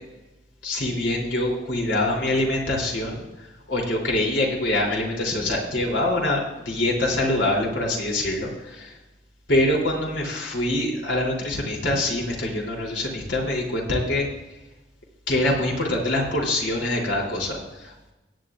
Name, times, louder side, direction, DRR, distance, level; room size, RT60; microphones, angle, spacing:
voice 1, 0.6-8.9 9.5-14.3 15.3-18.1, left 1 dB, 90° left, -2 dB, 3.1 m, -25 dB
17.5 x 10.0 x 2.4 m, 1.1 s
head